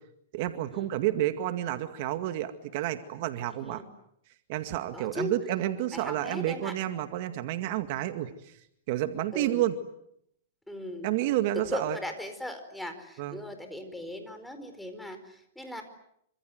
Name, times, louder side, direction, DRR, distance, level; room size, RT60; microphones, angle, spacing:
voice 1, 0.3-3.8 4.5-9.8 11.0-12.0 13.2-13.4, right 13 dB, 50° right, 8 dB, 2.1 m, -30 dB
voice 2, 3.5-3.8 4.9-5.3 5.9-6.7 9.3-9.7 10.7-11.1 11.7-15.8, left 1 dB, 5° left, 7 dB, 4.5 m, -38 dB
28.0 x 26.0 x 8.0 m, 0.75 s
hypercardioid pair, 145°, 0 cm